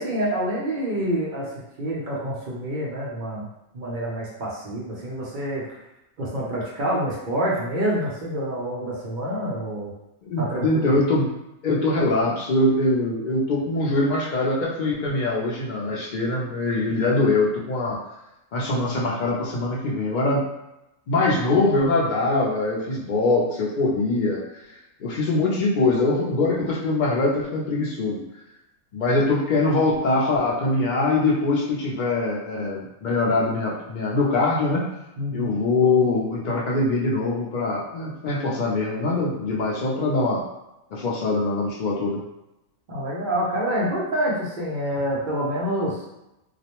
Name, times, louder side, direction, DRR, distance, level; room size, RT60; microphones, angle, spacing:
voice 1, 0.0-3.5 3.7-5.7 6.2-9.9 10.4-11.0 35.2-35.6 42.9-46.0, right 1 dB, 50° right, -5 dB, 0.6 m, -27 dB
voice 2, 10.2-11.3 11.6-18.0 18.5-20.4 21.1-24.6 25.0-28.2 28.9-34.9 35.3-40.4 40.9-42.2, left 2 dB, 55° left, -3 dB, 0.5 m, -23 dB
2.4 x 2.0 x 2.9 m, 0.89 s
omnidirectional pair, 1.3 m